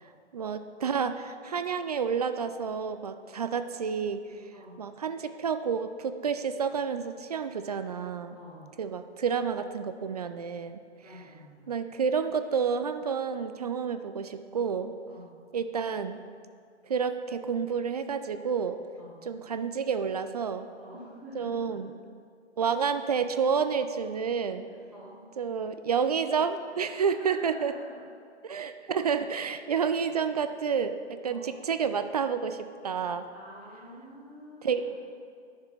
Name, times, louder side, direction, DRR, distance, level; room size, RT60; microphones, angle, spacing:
voice 1, 0.3-4.3 4.8-8.4 8.8-10.8 11.7-15.0 15.5-16.2 16.8-18.8 19.2-20.7 21.3-22.0 22.6-24.7 25.4-27.7 28.4-33.3 34.6-34.9, right 6 dB, 35° right, 10 dB, 0.4 m, -30 dB
voice 2, 11.0-11.7 15.1-15.3 19.0-19.2 20.7-21.9 22.5-22.6 24.7-25.2 27.1-28.0 30.4-30.6 31.3-31.5 33.3-34.9, equal, 5° right, -10 dB, 2.8 m, -47 dB
10.5 x 6.6 x 6.0 m, 2.3 s
figure-of-eight pair, 130°, 34 cm